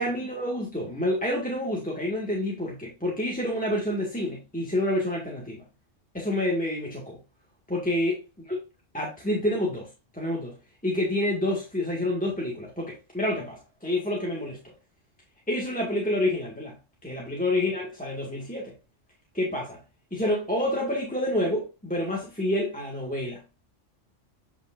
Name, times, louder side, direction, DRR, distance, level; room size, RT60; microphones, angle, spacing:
voice 1, 0.0-5.6 6.1-7.2 7.7-8.6 8.9-10.6 10.8-14.6 15.5-16.8 17.0-18.7 19.3-19.8 20.1-23.4, left 1 dB, 5° left, 1.8 m, -28 dB
8.0 x 5.2 x 2.5 m
omnidirectional pair, 1.3 m